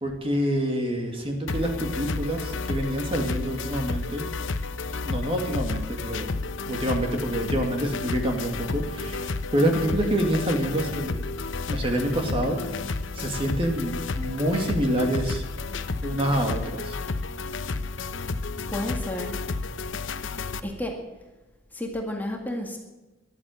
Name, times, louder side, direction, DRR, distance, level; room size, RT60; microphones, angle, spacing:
voice 1, 0.0-4.3 5.0-6.3 6.7-11.2 11.7-12.6 13.1-15.4 16.0-17.0, right 1 dB, 30° right, 3 dB, 2.4 m, -27 dB
sound 1, 1.5-20.6, left 3 dB, 75° left, 0.8 m, -31 dB
voice 2, 18.7-19.3 20.6-20.9 21.7-22.8, left 1 dB, 10° left, 1 dB, 2.0 m, -31 dB
14.0 x 11.5 x 7.9 m, 1.1 s
head